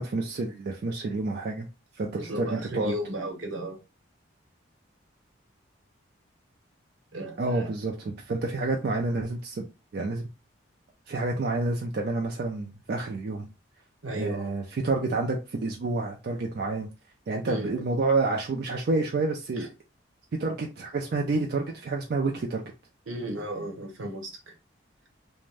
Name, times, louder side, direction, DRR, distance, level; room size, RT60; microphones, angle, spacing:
voice 1, 0.0-1.7 2.0-2.9 7.4-9.7 9.9-10.3 11.1-13.5 14.1-16.9 17.3-19.7 20.4-22.6, right 3 dB, 50° right, 1 dB, 0.3 m, -29 dB
voice 2, 2.2-3.8 7.1-7.7 14.0-14.5 17.5-17.7 19.6-19.7 23.1-24.5, right 1 dB, 80° right, 2 dB, 0.9 m, -34 dB
2.5 x 2.1 x 3.2 m, 0.28 s
head